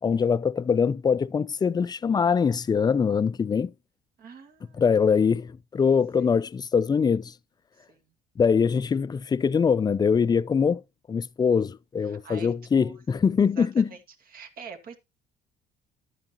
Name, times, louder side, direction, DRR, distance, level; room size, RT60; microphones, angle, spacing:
voice 1, 0.0-3.7 4.8-7.4 8.4-10.8 11.1-13.9, left 6 dB, 25° left, 0.4 m, -23 dB
voice 2, 4.2-4.8 7.8-8.0 12.0-12.9 13.6-14.0 14.3-15.0, right 6 dB, 60° right, 2.1 m, -44 dB
12.0 x 8.9 x 2.9 m
cardioid pair, 110°, 17 cm